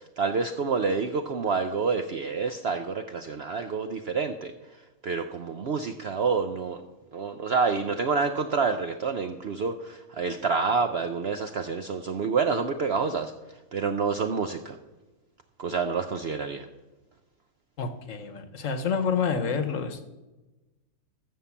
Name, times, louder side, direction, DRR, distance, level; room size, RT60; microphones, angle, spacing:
voice 1, 0.2-4.5 5.0-6.8 7.1-13.3 13.7-14.8 15.6-16.7, right 5 dB, 60° right, 7 dB, 0.7 m, -28 dB
voice 2, 17.8-20.1, left 6 dB, 60° left, 9 dB, 1.2 m, -28 dB
14.0 x 5.6 x 7.1 m, 1.1 s
omnidirectional pair, 1.7 m